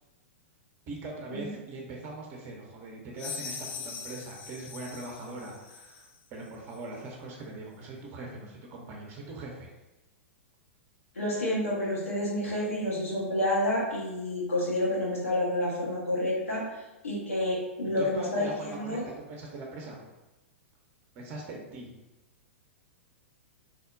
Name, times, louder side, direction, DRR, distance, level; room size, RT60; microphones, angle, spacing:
voice 1, 0.9-9.7 18.0-19.0 19.3-20.0 21.1-21.9, right 2 dB, 35° right, -1 dB, 0.6 m, -41 dB
sound 1, 3.2-6.1, left 6 dB, 55° left, 0.4 m, -41 dB
voice 2, 11.1-16.6 17.0-19.0, left 1 dB, 80° left, -6 dB, 1.0 m, -29 dB
3.4 x 2.1 x 2.4 m, 1.0 s
figure-of-eight pair, 105°, 7 cm